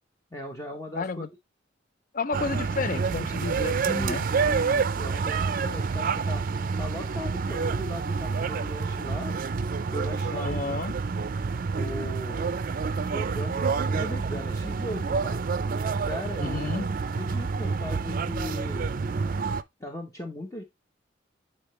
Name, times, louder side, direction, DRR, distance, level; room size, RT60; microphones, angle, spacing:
voice 1, 0.3-1.2 3.8-6.4 6.8-9.4 9.9-10.8 11.7-12.5 13.0-15.4 16.0-16.7 17.1-18.9 19.8-20.6, left 1 dB, 15° left, 1.0 m, -37 dB
voice 2, 0.9-1.3 2.1-4.3 10.3-10.9 16.4-16.9, left 4 dB, 50° left, 0.5 m, -31 dB
sound 1, 2.3-19.6, right 5 dB, 50° right, 0.4 m, -28 dB
8.9 x 4.2 x 3.1 m
head